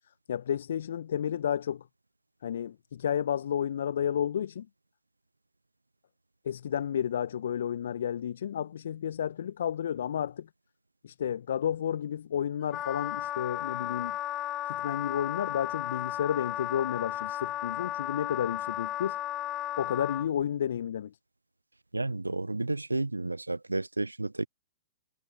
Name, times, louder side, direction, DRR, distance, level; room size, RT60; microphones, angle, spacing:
voice 1, 0.3-1.9 2.4-4.7 6.4-10.5 11.0-14.2 14.7-19.2 19.8-21.1, left 9 dB, 60° left, 1.2 m, -31 dB
Wind instrument woodwind instrument, 12.7-20.3, left 13 dB, 25° left, 0.4 m, -34 dB
voice 2, 21.9-24.5, right 2 dB, 85° right, 0.7 m, -31 dB
figure-of-eight pair, 105°, 0 cm